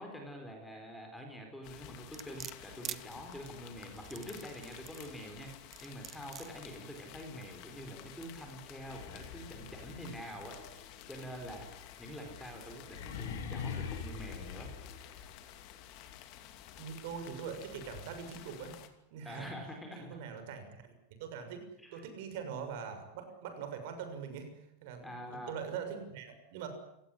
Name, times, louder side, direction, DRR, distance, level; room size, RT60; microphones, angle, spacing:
voice 1, 0.0-11.7 12.0-14.7 19.2-20.2 21.8-22.0 25.0-25.5, equal, 5° left, 3 dB, 4.3 m, -46 dB
sound 1, 1.6-18.9, left 11 dB, 35° left, 2.7 m, -52 dB
sound 2, 2.1-3.0 4.0-5.1 5.7-6.5 7.1-7.2, right 10 dB, 20° right, 1.1 m, -44 dB
sound 3, 8.7-15.6, left 6 dB, 75° left, 6.0 m, -44 dB
voice 2, 16.8-18.8 19.1-19.5 20.0-24.5 24.8-26.7, right 7 dB, 50° right, 8 dB, 6.5 m, -43 dB
28.5 x 18.0 x 10.0 m, 0.84 s
supercardioid pair, 180°, 0 cm